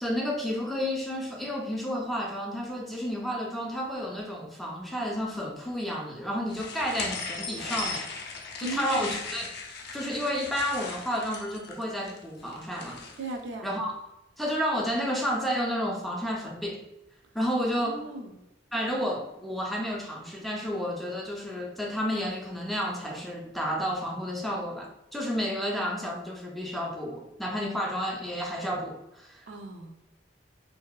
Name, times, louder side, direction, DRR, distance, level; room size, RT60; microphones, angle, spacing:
voice 1, 0.0-8.1 8.6-9.5 9.9-13.0 13.6-13.9 14.4-16.8 17.3-18.0 18.7-29.4, equal, ahead, -1 dB, 0.3 m, -31 dB
sound 1, 6.5-13.3, left 4 dB, 60° left, 0.4 m, -38 dB
voice 2, 8.6-9.1 13.2-13.7 17.7-18.4 29.5-29.9, right 2 dB, 75° right, 3 dB, 0.4 m, -37 dB
2.6 x 2.3 x 2.2 m, 0.89 s
head